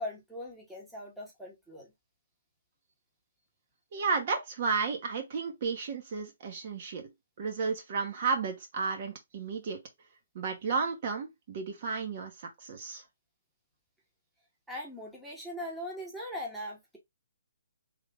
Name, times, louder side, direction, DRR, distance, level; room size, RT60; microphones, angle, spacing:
voice 1, 0.0-1.9 14.7-17.0, left 1 dB, ahead, 1.0 m, -40 dB
voice 2, 3.9-7.1 7.4-9.8 10.3-13.0, right 5 dB, 45° right, 1.0 m, -33 dB
3.4 x 2.4 x 3.3 m
hypercardioid pair, 155°, 0 cm